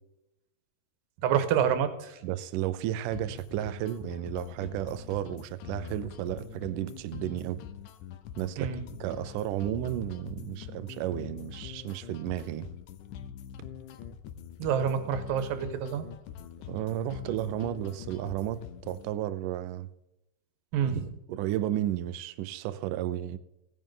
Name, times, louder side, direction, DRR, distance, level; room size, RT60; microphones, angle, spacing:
voice 1, 1.2-2.2 8.6-8.8 14.6-16.1 20.7-21.1, right 8 dB, 70° right, 10 dB, 2.6 m, -27 dB
voice 2, 2.2-7.6 8.4-8.7 9.0-12.7 16.7-19.9 20.8-20.9 21.3-23.4, right 12 dB, 90° right, 13 dB, 1.8 m, -33 dB
sound 1, 3.1-19.1, left 8 dB, 85° left, 1.7 m, -44 dB
17.0 x 10.5 x 3.8 m, 0.91 s
omnidirectional pair, 4.5 m